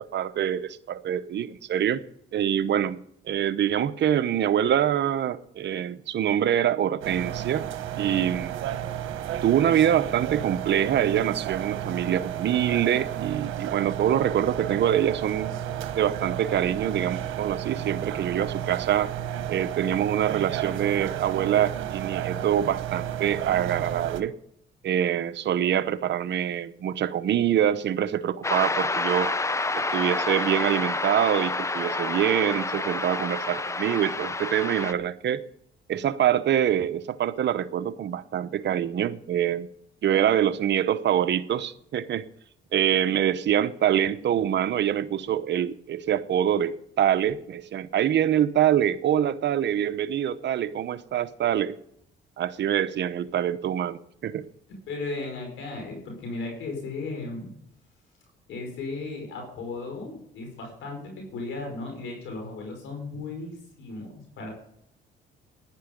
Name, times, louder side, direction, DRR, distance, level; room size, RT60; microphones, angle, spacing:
voice 1, 0.0-2.0 2.3-3.0 3.3-7.6 8.0-8.6 9.4-15.5 16.0-19.1 19.5-24.3 24.8-29.3 29.8-35.4 35.9-39.7 40.0-42.3 42.7-51.8 52.4-54.4, right 10 dB, 60° right, 0.9 m, -25 dB
sound 1, 7.0-24.2, right 11 dB, 85° right, 1.1 m, -32 dB
sound 2, 28.4-34.9, left 3 dB, 15° left, 0.6 m, -28 dB
voice 2, 54.9-57.5 58.5-64.5, left 3 dB, 80° left, 5.2 m, -35 dB
15.0 x 11.0 x 5.3 m
cardioid pair, 90°, 20 cm